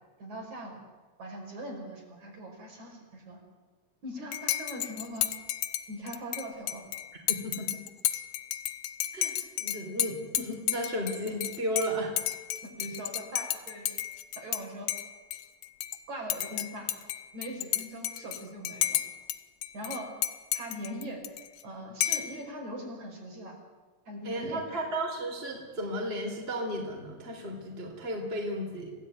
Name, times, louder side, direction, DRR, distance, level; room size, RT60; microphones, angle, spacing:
voice 1, 0.2-0.8 1.2-3.4 4.0-5.3 5.9-6.8 12.6-14.0 14.4-14.9 16.1-16.9 17.3-19.0 19.7-20.2 20.5-21.3 21.6-23.6 24.1-24.9, equal, 55° right, 1 dB, 6.7 m, -41 dB
Dishes pots and pans / Cutlery silverware / Chink clink, 4.3-14.6 14.9-16.0 16.3-19.4 19.6-21.6 22.0-22.4, left 13 dB, 80° left, 2.6 m, -32 dB
voice 2, 7.3-7.8 9.1-12.2 24.2-28.9, equal, 15° right, 1 dB, 3.8 m, -34 dB
28.0 x 17.5 x 9.4 m, 1.4 s
omnidirectional pair, 4.0 m